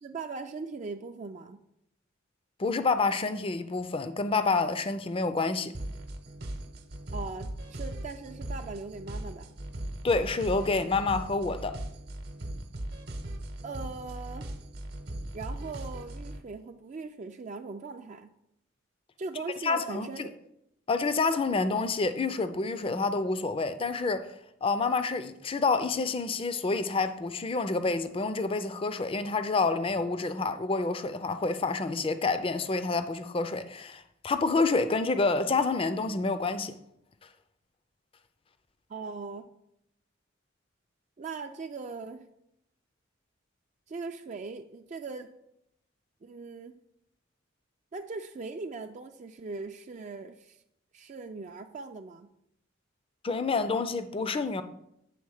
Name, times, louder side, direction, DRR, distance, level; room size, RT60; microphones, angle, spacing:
voice 1, 0.0-1.6 7.1-9.5 13.6-14.5 15.3-18.3 19.2-20.2 38.9-39.5 41.2-42.2 43.9-45.3 46.2-46.8 47.9-50.6 50.9-52.3, right 4 dB, 35° right, 0.3 m, -40 dB
voice 2, 2.6-5.7 10.0-11.8 19.6-20.3 20.9-24.3 24.6-36.7 53.2-54.6, left 3 dB, 25° left, 0.4 m, -28 dB
sound 1, 5.7-16.4, right 1 dB, 55° right, 0.9 m, -39 dB
8.5 x 3.6 x 6.3 m
head